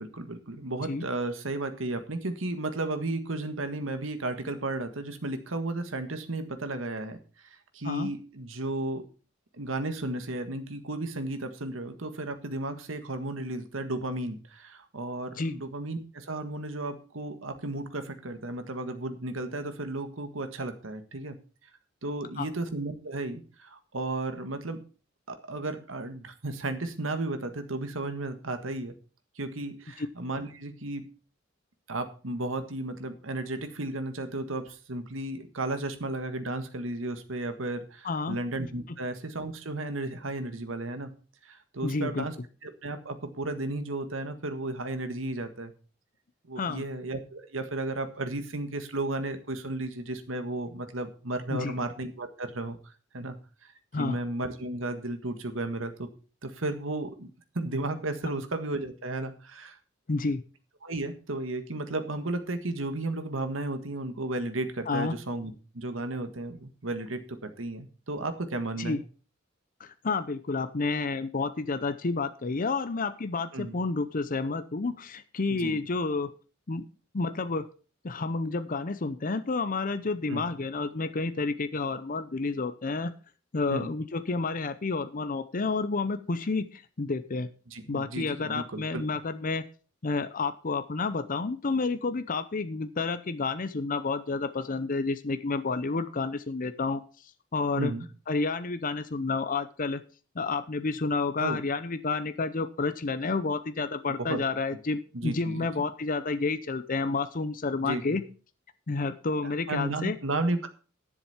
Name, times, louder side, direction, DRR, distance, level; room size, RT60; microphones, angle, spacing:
voice 1, 0.0-7.2 7.7-9.0 9.5-21.4 22.0-24.8 25.3-28.9 29.4-31.0 31.9-41.1 41.4-42.3 42.6-45.7 46.5-53.4 53.6-56.1 56.4-57.3 57.5-59.8 60.8-69.0 73.5-73.8 75.5-75.8 80.3-80.5 83.7-83.9 87.7-89.0 97.7-98.1 101.4-101.6 104.1-104.4 105.1-105.7 107.8-108.2 109.7-110.7, right 2 dB, 85° right, 8 dB, 1.6 m, -34 dB
voice 2, 38.0-38.4 41.8-42.3 46.6-46.8 51.5-51.8 53.9-54.2 60.1-60.4 64.9-65.2 68.8-69.0 69.8-76.3 76.7-76.8 77.1-77.7 78.0-83.1 83.5-87.5 87.9-89.6 90.0-97.0 97.5-97.9 98.3-100.0 100.4-108.2 108.9-110.2, left 3 dB, 45° left, 11 dB, 0.7 m, -30 dB
11.0 x 7.3 x 5.7 m, 0.38 s
head